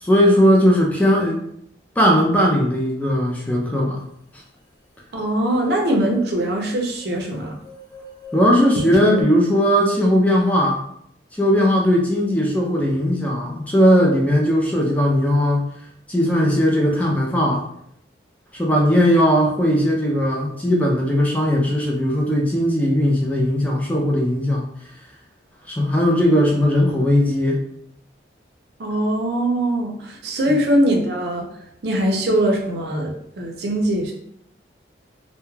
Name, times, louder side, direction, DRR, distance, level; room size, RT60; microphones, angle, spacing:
voice 1, 0.0-1.4 2.0-4.0 8.3-10.8 11.3-15.6 16.1-17.7 18.5-24.7 25.7-27.6, equal, 10° left, -1 dB, 0.3 m, -18 dB
voice 2, 5.1-7.5 28.8-31.5 31.8-34.1, right 1 dB, 65° right, 1 dB, 0.5 m, -21 dB
sound 1, 5.2-5.3 5.5-9.2, equal, 40° left, 0.9 m, -40 dB
2.2 x 2.1 x 3.1 m, 0.70 s
head